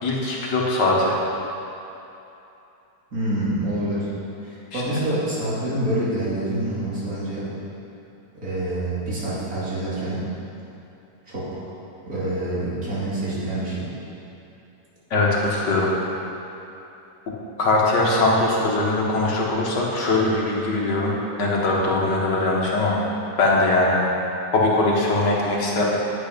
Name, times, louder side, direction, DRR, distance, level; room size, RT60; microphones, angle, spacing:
voice 1, 0.0-1.2 4.7-4.8 15.1-15.9 17.6-23.0 23.4-24.0 24.5-25.9, left 2 dB, 85° left, -3 dB, 2.2 m, -21 dB
voice 2, 3.1-4.1 4.4-7.5 8.4-10.2 11.3-11.6 12.0-13.9, right 1 dB, 55° right, -9 dB, 3.1 m, -26 dB
9.8 x 8.5 x 5.2 m, 2.9 s
omnidirectional pair, 1.8 m